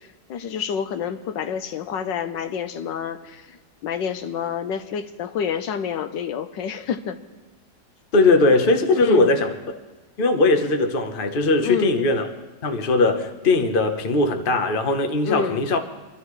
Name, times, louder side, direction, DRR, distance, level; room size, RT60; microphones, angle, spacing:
voice 1, 0.3-7.2 8.9-9.3 11.6-11.9 15.2-15.7, left 7 dB, 85° left, 1.5 m, -28 dB
voice 2, 8.1-9.8 10.2-12.3 12.6-15.8, left 2 dB, 35° left, 1.0 m, -19 dB
25.5 x 12.5 x 3.2 m
omnidirectional pair, 1.9 m